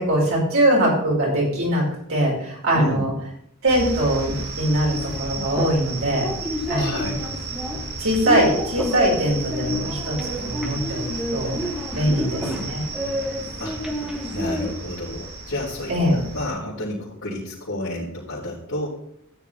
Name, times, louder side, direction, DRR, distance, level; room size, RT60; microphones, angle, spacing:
voice 1, 0.0-3.1 3.6-6.3 6.7-7.1 8.0-10.2 10.4-11.0 11.3-11.6 11.9-12.8 15.9-16.2, right 1 dB, 65° right, -4 dB, 5.7 m, -22 dB
voice 2, 2.7-3.1 6.7-7.2 12.0-12.7 13.6-13.8 14.3-18.9, left 1 dB, 70° left, -9 dB, 3.7 m, -31 dB
sound 1, 3.7-16.5, right 3 dB, 85° right, 3.4 m, -34 dB
sound 2, 4.9-14.7, left 1 dB, 5° right, 1.4 m, -30 dB
13.5 x 10.0 x 3.6 m, 0.70 s
head